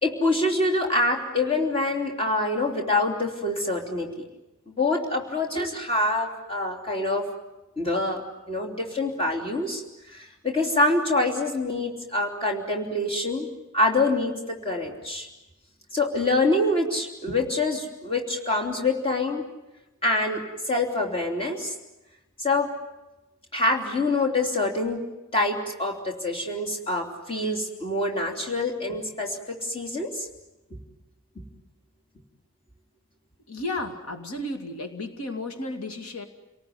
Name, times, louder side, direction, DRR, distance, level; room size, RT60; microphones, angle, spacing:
voice 1, 0.0-4.1 4.7-7.3 7.8-9.8 10.1-13.5 13.7-15.3 15.9-19.4 20.0-20.4 20.7-21.7 22.4-22.7 23.5-25.0 25.3-30.3, left 2 dB, 25° left, 1 dB, 3.4 m, -25 dB
voice 2, 33.5-36.2, left 2 dB, 90° left, 6 dB, 2.4 m, -33 dB
29.5 x 19.0 x 9.5 m, 1.0 s
head